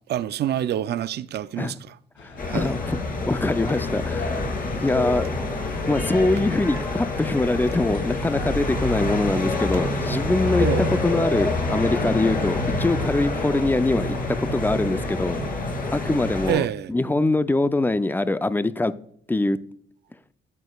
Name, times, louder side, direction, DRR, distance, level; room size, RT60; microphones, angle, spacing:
voice 1, 0.1-1.7 2.5-2.7 10.6-10.9 16.5-16.9, right 11 dB, 55° right, 0.5 m, -26 dB
sound 1, 2.2-14.8, left 3 dB, 75° left, 2.0 m, -44 dB
voice 2, 2.2-3.0 3.3-5.4 5.9-15.4 15.9-18.9 19.3-19.6, left 2 dB, 10° left, 0.4 m, -23 dB
sound 2, 2.4-16.5, left 2 dB, 45° left, 2.8 m, -27 dB
11.0 x 7.8 x 2.3 m
cardioid pair, 90°, 20 cm